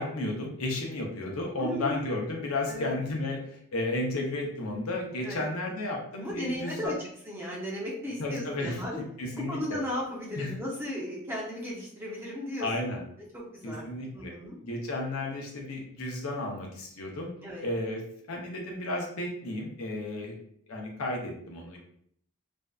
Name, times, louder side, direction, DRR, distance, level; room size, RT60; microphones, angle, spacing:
voice 1, 0.0-6.9 8.2-8.8 9.2-9.6 10.4-10.5 12.6-13.0 13.6-17.3 17.6-18.0 18.3-20.3 20.7-21.8, left 2 dB, 80° left, 0 dB, 0.6 m, -33 dB
voice 2, 1.6-2.0 2.7-2.9 5.2-5.4 6.2-6.9 7.3-9.0 9.3-12.7 13.3-13.9 14.1-14.6 17.4-17.6, left 1 dB, 10° right, -5 dB, 0.6 m, -35 dB
2.5 x 2.1 x 2.3 m, 0.66 s
head